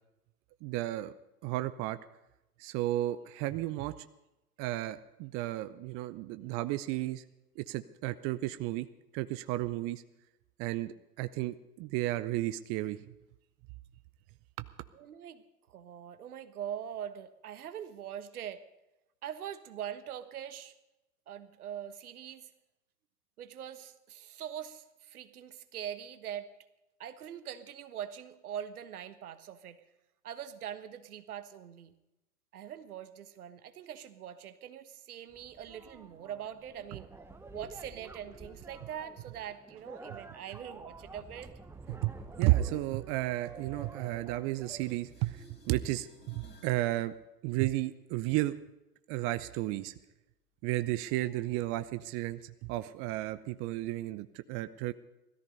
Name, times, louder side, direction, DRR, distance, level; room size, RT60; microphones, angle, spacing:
voice 1, 0.6-1.1 1.4-2.0 2.6-4.1 4.6-7.2 7.6-8.9 9.1-10.0 10.6-13.0 41.9-47.1 47.4-48.5 49.1-49.9 50.6-54.9, right 16 dB, 30° right, 13 dB, 0.5 m, -33 dB
voice 2, 14.9-18.6 19.2-20.8 21.3-22.5 23.4-26.5 27.0-29.8 30.2-31.9 32.5-37.1 37.5-41.5, right 9 dB, 70° right, 11 dB, 1.4 m, -43 dB
sound 1, 35.3-45.0, right 3 dB, 5° right, 0.9 m, -50 dB
sound 2, 42.6-44.7 44.9-46.8 52.6-52.7, left 2 dB, 20° left, 3.2 m, -60 dB
17.0 x 14.0 x 5.4 m, 0.94 s
figure-of-eight pair, 95°, 46 cm